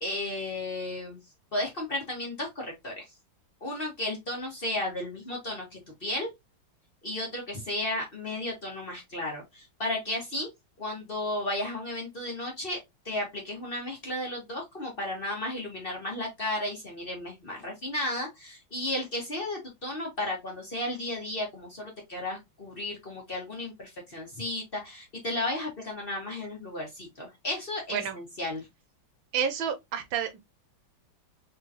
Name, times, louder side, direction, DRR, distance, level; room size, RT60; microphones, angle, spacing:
voice 1, 0.0-1.2 1.5-3.0 3.6-6.3 7.0-10.5 10.8-12.8 13.0-28.7, left 1 dB, 30° left, 1.4 m, -34 dB
voice 2, 29.3-30.4, right 8 dB, 75° right, 1.4 m, -30 dB
3.9 x 3.6 x 2.8 m
omnidirectional pair, 2.2 m